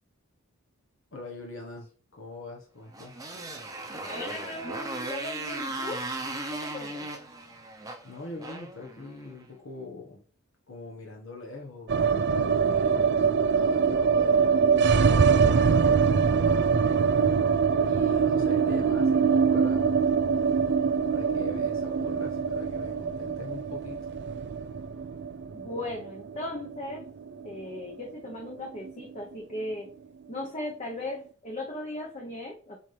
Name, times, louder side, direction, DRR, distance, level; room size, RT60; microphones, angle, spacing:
voice 1, 1.1-3.2 8.0-10.2 10.7-11.9 12.3-17.1 17.8-20.2 21.1-24.0, left 3 dB, 60° left, 0 dB, 1.3 m, -43 dB
Motorcycle, 2.9-9.4, right 2 dB, 15° right, 0.9 m, -37 dB
voice 2, 4.0-6.0 6.5-7.1 25.5-27.0 27.4-29.9 30.3-32.8, left 1 dB, 30° left, 0 dB, 1.0 m, -37 dB
sound 1, 11.9-28.0 28.3-28.4 28.6-29.3, right 6 dB, 50° right, 0.4 m, -24 dB
7.3 x 4.3 x 3.4 m, 0.42 s
head